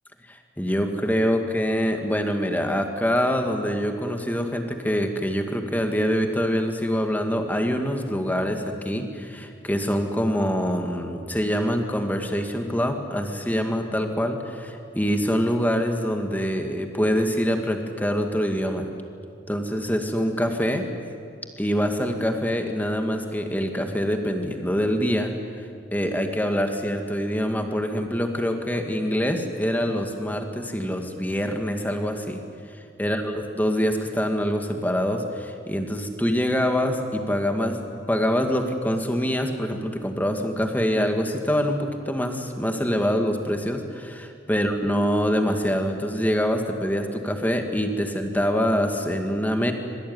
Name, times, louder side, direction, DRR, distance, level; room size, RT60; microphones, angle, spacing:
voice 1, 0.3-18.9 19.5-20.8 21.6-25.3 25.6-25.7 25.9-32.4 33.0-37.8 38.1-49.7, equal, 10° left, 4 dB, 2.3 m, -25 dB
26.0 x 23.5 x 9.7 m, 2.3 s
head